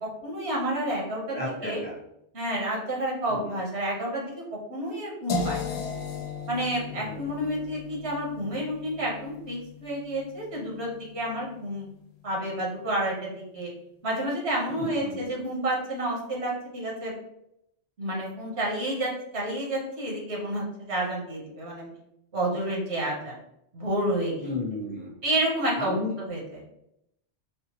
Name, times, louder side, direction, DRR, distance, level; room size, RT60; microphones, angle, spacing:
voice 1, 0.0-1.8 2.3-4.3 4.7-5.7 6.5-11.9 12.2-13.7 14.0-17.1 18.0-21.9 22.3-23.4 23.7-24.5 25.2-26.4, right 1 dB, 75° right, -3 dB, 1.4 m, -30 dB
voice 2, 1.3-1.9 3.3-3.6 6.9-7.5 14.7-15.3 24.4-25.1 25.7-26.2, left 2 dB, 10° left, -4 dB, 0.9 m, -34 dB
sound 1, 5.3-11.2, left 3 dB, 75° left, 0.9 m, -36 dB
4.3 x 2.3 x 2.9 m, 0.79 s
omnidirectional pair, 1.1 m